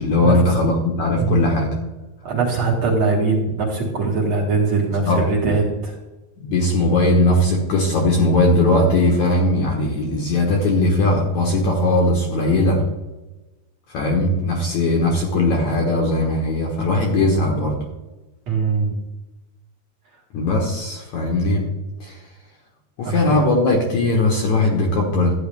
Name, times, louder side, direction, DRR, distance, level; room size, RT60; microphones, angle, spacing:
voice 1, 0.0-1.7 5.0-5.2 6.4-12.8 13.9-17.8 20.3-21.7 22.0-22.2 23.0-25.3, left 2 dB, 60° left, 0 dB, 2.1 m, -19 dB
voice 2, 2.2-6.0 18.5-18.9 23.0-23.3, right 4 dB, 50° right, -3 dB, 2.5 m, -21 dB
13.0 x 9.2 x 3.5 m, 1.1 s
omnidirectional pair, 4.6 m